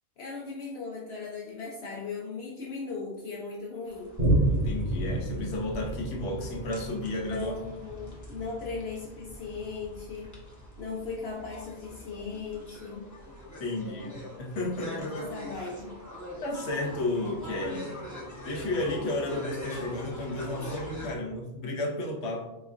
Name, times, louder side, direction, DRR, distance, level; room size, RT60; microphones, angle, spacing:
voice 1, 0.2-4.1 7.3-10.3 10.8-13.0 14.9-15.9, left 4 dB, 65° left, -2 dB, 0.9 m, -38 dB
sound 1, 3.9-21.1, left 1 dB, 15° left, 0.8 m, -43 dB
Boom, 4.2-11.1 11.6-11.7, right 1 dB, 65° right, 1.9 m, -31 dB
voice 2, 4.5-7.5 13.6-15.1 16.4-17.9 18.4-22.5, left 2 dB, 80° left, 0 dB, 1.1 m, -32 dB
4.1 x 3.9 x 2.5 m, 1.0 s
omnidirectional pair, 1.2 m